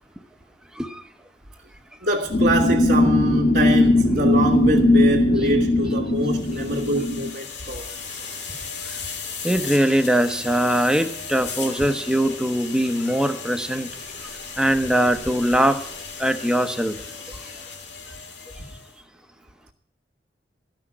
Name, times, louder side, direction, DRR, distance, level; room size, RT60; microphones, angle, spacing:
voice 1, 2.0-7.9 11.8-11.9, right 1 dB, 75° right, 1.7 m, -24 dB
sound 1, 2.3-7.3, left 2 dB, 45° left, 1.4 m, -19 dB
sound 2, 6.2-18.9, left 5 dB, 70° left, 2.3 m, -36 dB
voice 2, 9.4-13.9 14.6-15.8 16.2-16.9, right 1 dB, 5° right, 0.8 m, -21 dB
13.5 x 6.1 x 9.7 m
head